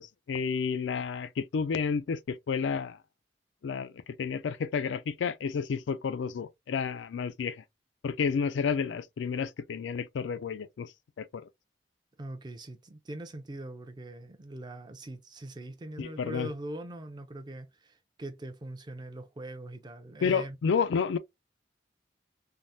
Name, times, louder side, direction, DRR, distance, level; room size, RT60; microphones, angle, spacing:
voice 1, 0.0-3.0 3.6-7.6 8.0-10.9 11.2-11.4 16.0-16.5 20.2-21.2, left 6 dB, 85° left, 0.4 m, -31 dB
voice 2, 12.2-20.6, right 1 dB, 25° right, 0.4 m, -42 dB
3.4 x 2.0 x 2.6 m
head